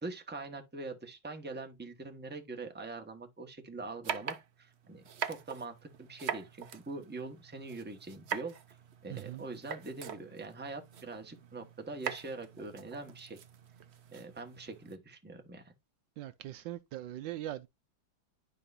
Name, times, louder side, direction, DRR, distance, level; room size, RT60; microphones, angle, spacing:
voice 1, 0.0-8.8 9.0-13.4 14.1-15.7, right 3 dB, 5° right, 1.1 m, -43 dB
sound 1, 4.0-15.0, right 8 dB, 60° right, 0.7 m, -43 dB
voice 2, 9.1-9.4 16.2-17.7, right 13 dB, 75° right, 1.2 m, -41 dB
12.0 x 4.9 x 2.6 m
omnidirectional pair, 2.1 m